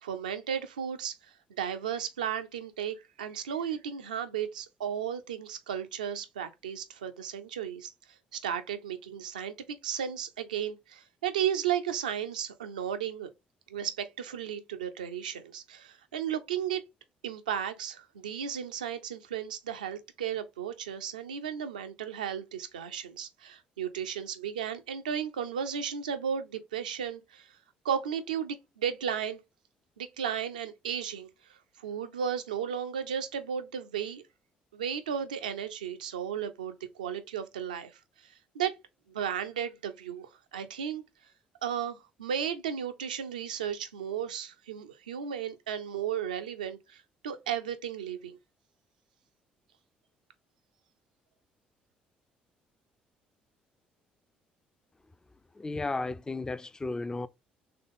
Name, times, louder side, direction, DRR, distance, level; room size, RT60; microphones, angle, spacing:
voice 1, 0.0-7.9 8.3-13.3 13.7-16.8 17.2-27.6 27.8-29.4 30.0-34.2 34.7-37.9 38.2-38.7 39.1-41.0 41.6-48.4, right 8 dB, 80° right, 0.4 m, -34 dB
voice 2, 55.6-57.3, left 3 dB, 15° left, 0.3 m, -34 dB
3.8 x 3.4 x 3.7 m
figure-of-eight pair, 50°, 4 cm